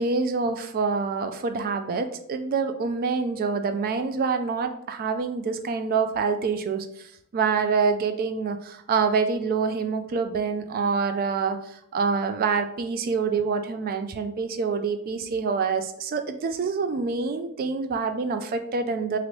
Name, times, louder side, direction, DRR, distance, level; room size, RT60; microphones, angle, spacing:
voice 1, 0.0-19.2, right 5 dB, 40° right, 8 dB, 0.3 m, -26 dB
3.0 x 2.5 x 3.1 m, 0.72 s
head